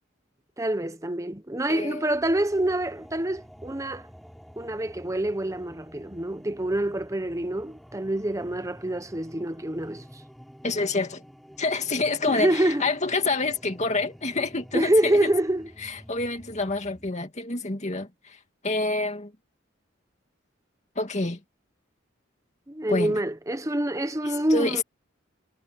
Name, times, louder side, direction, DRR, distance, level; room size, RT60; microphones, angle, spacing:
voice 1, 0.6-4.1 4.6-10.0 12.3-12.8 14.7-15.7 22.7-24.8, right 1 dB, 15° right, 1.0 m, -26 dB
voice 2, 1.7-2.0 10.6-11.2 11.6-15.3 15.8-18.4 18.6-19.3 21.0-21.4 22.9-23.2 24.2-24.8, left 3 dB, 35° left, 2.3 m, -27 dB
sound 1, 2.1-17.1, equal, ahead, 4.1 m, -49 dB
head